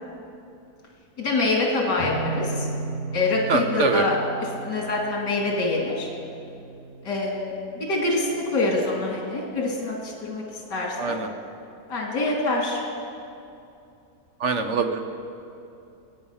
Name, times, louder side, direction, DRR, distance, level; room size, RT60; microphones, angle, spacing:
voice 1, 1.2-2.7 3.1-4.2 4.6-6.1 7.0-11.2 11.9-12.8, left 2 dB, 80° left, -2 dB, 2.8 m, -25 dB
sound 1, 2.0-7.6, right 3 dB, 55° left, 3.3 m, -35 dB
voice 2, 3.5-4.0 11.0-11.3 14.4-15.1, right 4 dB, 50° right, 6 dB, 1.1 m, -24 dB
24.5 x 9.1 x 5.6 m, 2.7 s
omnidirectional pair, 1.8 m